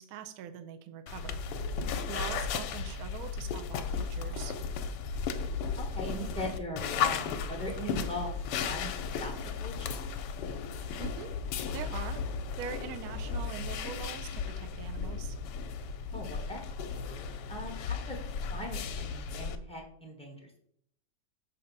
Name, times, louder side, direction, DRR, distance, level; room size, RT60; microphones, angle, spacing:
voice 1, 0.0-1.7 2.1-4.5 11.0-11.5 11.7-12.2 12.6-15.4, right 9 dB, 70° right, 9 dB, 0.9 m, -43 dB
sound 1, 1.1-19.6, left 6 dB, 75° left, 1.1 m, -35 dB
voice 2, 2.0-2.3 5.8-8.9 9.2-9.3 9.6-10.1 16.1-16.6 16.9-18.2 18.5-20.5, equal, 5° left, -1 dB, 0.5 m, -40 dB
6.5 x 2.7 x 5.3 m, 0.69 s
omnidirectional pair, 2.0 m